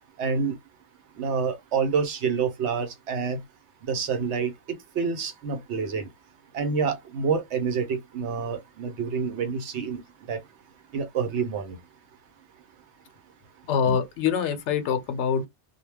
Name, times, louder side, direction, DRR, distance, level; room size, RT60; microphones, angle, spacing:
voice 1, 0.2-0.5 1.2-3.4 3.9-4.5 5.0-6.1 6.5-10.0 10.3-10.4 10.9-11.8, right 5 dB, 80° right, 0.9 m, -27 dB
voice 2, 13.7-15.5, left 7 dB, 80° left, 0.9 m, -24 dB
2.2 x 2.1 x 3.2 m
omnidirectional pair, 1.2 m